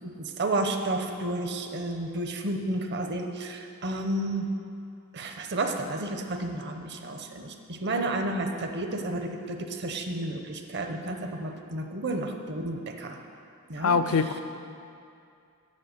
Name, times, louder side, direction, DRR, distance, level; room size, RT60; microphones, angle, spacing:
voice 1, 0.0-4.5 5.1-13.2 13.7-14.0, right 2 dB, 50° right, 4 dB, 0.8 m, -31 dB
voice 2, 13.8-14.4, left 5 dB, 70° left, 10 dB, 0.4 m, -24 dB
7.5 x 6.3 x 8.0 m, 2.5 s
head